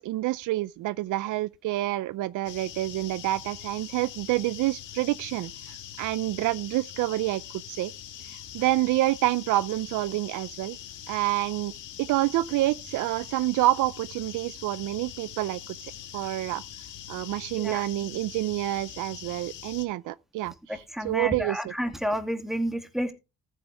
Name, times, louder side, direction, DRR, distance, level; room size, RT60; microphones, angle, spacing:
voice 1, 0.0-7.4 7.7-7.9 8.3-10.8 11.1-11.7 12.0-15.8 16.1-16.6 17.1-21.7, right 16 dB, 85° right, 0.6 m, -28 dB
sound 1, 2.5-19.9, left 10 dB, 80° left, 2.0 m, -43 dB
voice 2, 20.7-23.1, equal, ahead, 2.5 m, -30 dB
14.0 x 9.2 x 3.4 m
cardioid pair, 90°, 30 cm